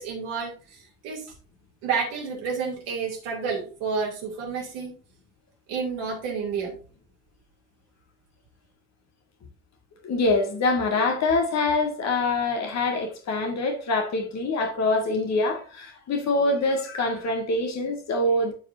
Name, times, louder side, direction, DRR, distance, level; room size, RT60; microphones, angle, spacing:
voice 1, 0.0-1.3 1.8-5.0 5.7-6.7, right 5 dB, 70° right, 2.7 m, -30 dB
voice 2, 10.0-18.5, left 2 dB, 50° left, 1.9 m, -25 dB
12.5 x 4.9 x 2.6 m
figure-of-eight pair, 40°, 34 cm